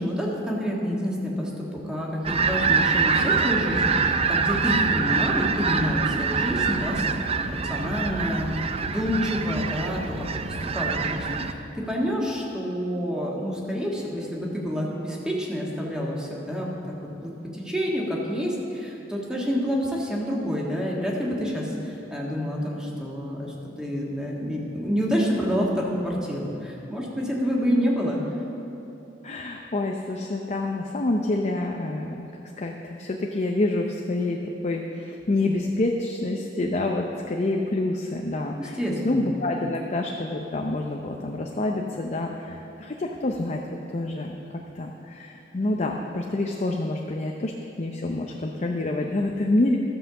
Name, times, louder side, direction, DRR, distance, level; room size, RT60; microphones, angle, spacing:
voice 1, 0.0-10.1 10.5-16.7 17.2-28.2 38.6-39.3, equal, 5° right, -4 dB, 1.7 m, -28 dB
sound 1, 2.2-11.5, right 5 dB, 35° right, 0.4 m, -25 dB
voice 2, 29.2-32.3 32.6-32.7 33.0-38.8 39.0-43.6 43.9-44.4 44.7-47.5 47.8-49.8, left 2 dB, 40° left, 1 dB, 0.6 m, -27 dB
13.5 x 5.6 x 6.9 m, 2.9 s
head